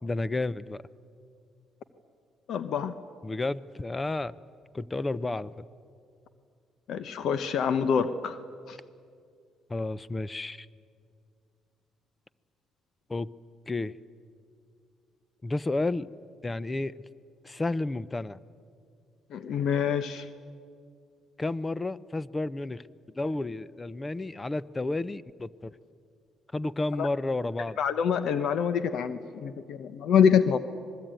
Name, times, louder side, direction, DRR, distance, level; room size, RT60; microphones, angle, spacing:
voice 1, 0.0-0.8 3.2-4.4 4.7-5.7 9.7-10.7 13.1-13.3 13.7-14.0 15.4-16.1 16.4-16.9 17.4-18.4 21.4-22.8 23.1-25.8 26.5-27.8, left 2 dB, 20° left, 19 dB, 0.6 m, -31 dB
voice 2, 2.5-2.9 6.9-8.4 8.7-8.8 19.3-20.3 27.0-27.1 27.8-30.6, left 7 dB, 65° left, 12 dB, 0.9 m, -26 dB
26.5 x 21.0 x 9.1 m, 2.3 s
cardioid pair, 115°, 0 cm